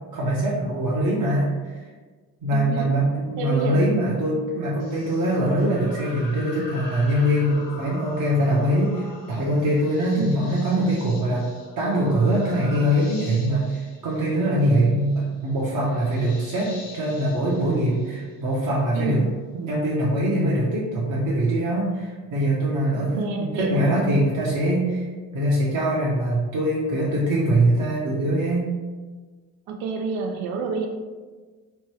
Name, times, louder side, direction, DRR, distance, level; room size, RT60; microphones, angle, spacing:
voice 1, 0.1-1.8 2.4-11.5 11.8-19.3 19.5-25.1 25.3-28.7, right 1 dB, 40° right, -6 dB, 0.8 m, -23 dB
voice 2, 2.5-2.9 3.4-3.9 4.3-4.4 10.2-10.6 18.9-19.3 22.9-23.9 29.7-30.9, right 5 dB, 75° right, 2 dB, 0.6 m, -29 dB
sound 1, 4.8-18.7, left 2 dB, 80° left, 0.9 m, -44 dB
3.1 x 2.2 x 3.1 m, 1.4 s
supercardioid pair, 65°, 48 cm